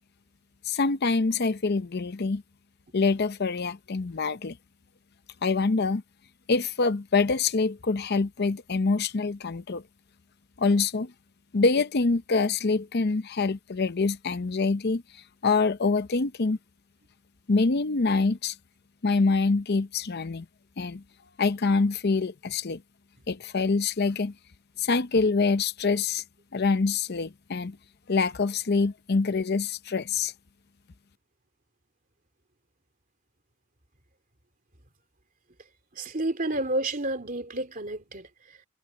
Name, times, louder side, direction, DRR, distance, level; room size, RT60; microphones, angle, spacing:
voice 1, 0.7-2.4 2.9-4.6 5.4-6.0 6.5-9.8 10.6-11.1 11.5-15.0 15.4-16.6 17.5-18.5 19.0-20.5 20.8-21.0 21.4-22.8 23.3-24.3 24.8-26.2 26.5-27.8 28.1-30.3, left 4 dB, 50° left, 0.6 m, -25 dB
voice 2, 35.9-38.7, right 1 dB, 40° right, 3.2 m, -31 dB
head